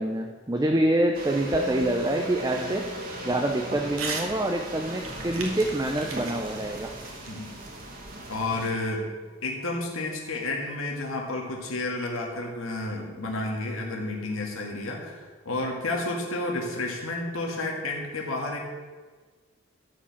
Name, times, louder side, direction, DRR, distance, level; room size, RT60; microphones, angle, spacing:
voice 1, 0.0-2.9 3.2-6.9, right 1 dB, 15° right, 3 dB, 0.6 m, -26 dB
sound 1, 1.1-8.7, right 1 dB, 45° right, 1.8 m, -39 dB
Musical instrument, 1.5-11.1, left 2 dB, 60° left, 0.7 m, -42 dB
Crumpling crinkling / Tearing, 4.0-4.3 4.6-8.0, right 4 dB, 85° right, 2.0 m, -37 dB
voice 2, 8.3-9.1 9.4-18.6, left 2 dB, 80° left, 0 dB, 1.8 m, -31 dB
13.0 x 4.9 x 7.4 m, 1.4 s
head